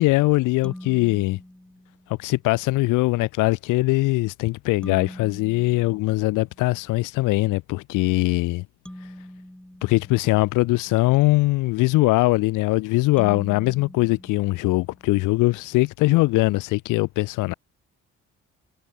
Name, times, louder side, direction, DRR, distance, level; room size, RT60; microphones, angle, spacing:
voice 1, 0.0-1.4 2.2-8.6 9.8-17.5, left 21 dB, 90° left, 0.5 m, -21 dB
sound 1, 0.6-2.3 4.8-6.8 8.9-11.0 13.2-15.2, equal, 5° left, 7.4 m, -43 dB
cardioid pair, 90°, 30 cm